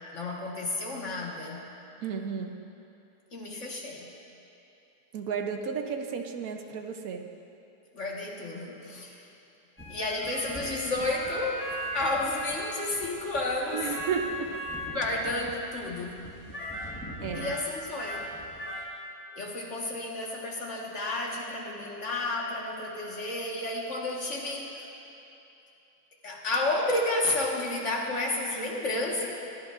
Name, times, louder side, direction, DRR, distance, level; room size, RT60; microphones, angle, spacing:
voice 1, 0.1-1.6 3.3-4.1 7.9-9.2 9.9-11.7 11.9-13.9 14.9-16.2 17.3-18.3 19.3-24.8 26.2-29.3, left 2 dB, 45° left, -2 dB, 1.7 m, -31 dB
voice 2, 2.0-2.6 5.1-7.2 13.7-14.5 17.2-17.5, right 6 dB, 65° right, 4 dB, 1.1 m, -33 dB
sound 1, 9.8-18.9, equal, 10° left, 1.2 m, -38 dB
22.5 x 11.0 x 2.5 m, 2.9 s
omnidirectional pair, 1.8 m